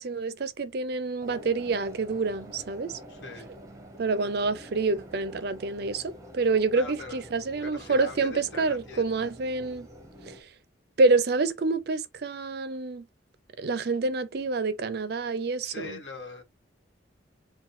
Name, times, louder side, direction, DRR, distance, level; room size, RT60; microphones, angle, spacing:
voice 1, 0.0-2.9 4.0-9.9 10.3-10.4 11.0-13.1 13.6-16.0, right 3 dB, 55° right, 0.4 m, -27 dB
sound 1, 1.2-10.4, equal, 15° right, 0.8 m, -47 dB
voice 2, 3.1-3.5 6.7-7.3 7.6-9.3 15.6-16.4, left 3 dB, 60° left, 1.3 m, -42 dB
3.6 x 2.2 x 4.2 m
head